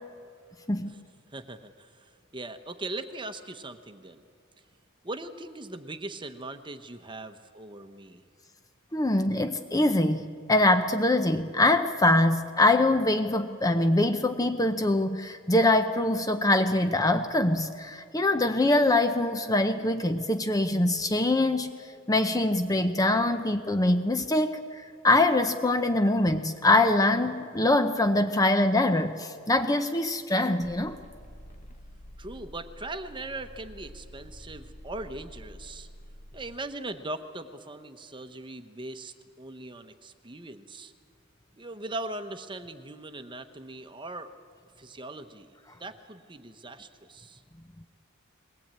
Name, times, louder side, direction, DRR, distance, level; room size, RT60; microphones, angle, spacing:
voice 1, 1.3-4.3 5.0-8.2 32.2-35.9 36.3-40.9 41.6-44.3 44.8-45.5 45.8-47.4, right 2 dB, 20° right, 9 dB, 1.0 m, -40 dB
voice 2, 8.9-21.8 22.1-31.0, left 2 dB, 15° left, 8 dB, 0.7 m, -24 dB
sound 1, 30.6-36.6, equal, 30° left, 1.2 m, -48 dB
21.5 x 19.0 x 8.8 m, 2.2 s
head